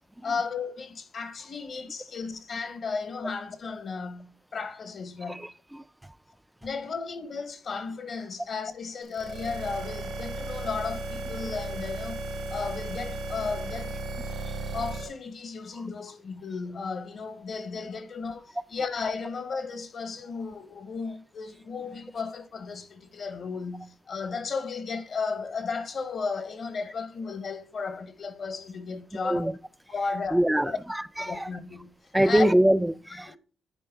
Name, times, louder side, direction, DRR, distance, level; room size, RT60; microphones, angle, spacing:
voice 1, 0.2-5.5 6.6-12.2 12.5-13.9 14.7-29.5 29.9-30.8 31.2-31.9 32.2-32.5 33.3-33.4, left 4 dB, 50° left, 0.8 m, -34 dB
voice 2, 5.3-5.8 11.4-11.5 29.2-29.5 30.3-31.5 32.1-33.4, right 1 dB, 5° right, 0.3 m, -24 dB
sound 1, 9.1-15.1, right 2 dB, 80° right, 1.8 m, -35 dB
10.0 x 4.2 x 3.4 m
cardioid pair, 90°, 0 cm